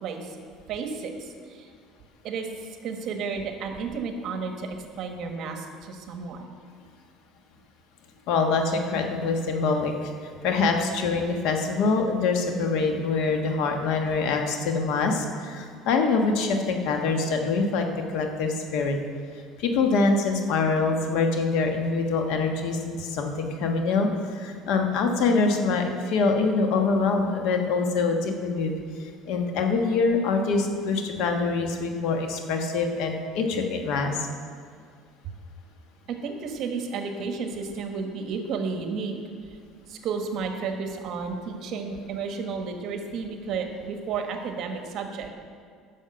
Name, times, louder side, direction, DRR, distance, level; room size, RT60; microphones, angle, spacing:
voice 1, 0.0-0.4 0.7-1.7 2.2-2.5 2.8-6.5 36.1-39.2 39.9-45.3, right 5 dB, 50° right, 4 dB, 1.3 m, -32 dB
voice 2, 8.3-10.1 10.4-19.0 19.6-28.7 29.0-34.3, left 4 dB, 70° left, 4 dB, 1.3 m, -25 dB
10.0 x 6.3 x 7.8 m, 2.1 s
cardioid pair, 130°, 0 cm